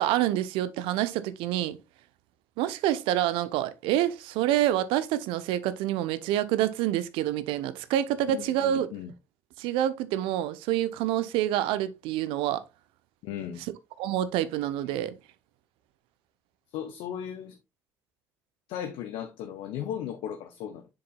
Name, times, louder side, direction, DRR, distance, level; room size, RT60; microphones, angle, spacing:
voice 1, 0.0-1.8 2.6-8.9 9.6-12.6 14.0-15.1, right 12 dB, 70° right, 0.8 m, -27 dB
voice 2, 8.3-9.1 13.2-13.6 16.7-17.6 18.7-20.9, left 9 dB, 65° left, 0.8 m, -36 dB
7.9 x 6.7 x 2.3 m
hypercardioid pair, 50°, 9 cm